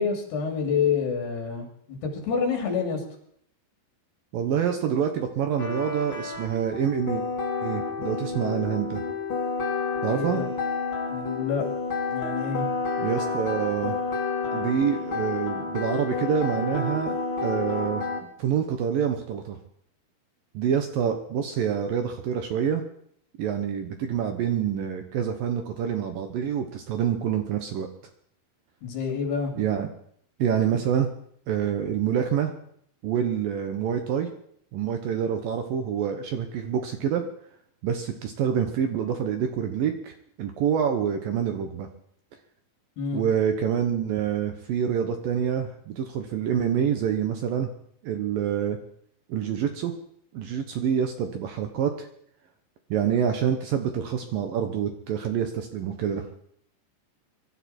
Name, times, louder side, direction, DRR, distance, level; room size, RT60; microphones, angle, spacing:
voice 1, 0.0-3.0 10.1-10.5 11.1-11.7 12.1-12.7 28.8-29.5 43.0-43.2, left 6 dB, 65° left, 2 dB, 4.9 m, -28 dB
voice 2, 4.3-7.2 7.6-9.0 10.0-10.4 13.0-14.0 14.5-17.2 17.4-19.6 20.5-22.8 23.4-27.9 29.6-29.9 30.4-31.1 31.5-32.5 33.0-34.3 34.7-37.2 37.8-41.9 43.1-47.7 48.0-48.8 49.3-49.9 50.3-52.1 52.9-56.3, right 8 dB, 70° right, 6 dB, 2.4 m, -27 dB
sound 1, 5.6-18.2, left 4 dB, 35° left, 2.7 m, -30 dB
24.0 x 13.0 x 4.4 m, 0.68 s
omnidirectional pair, 5.0 m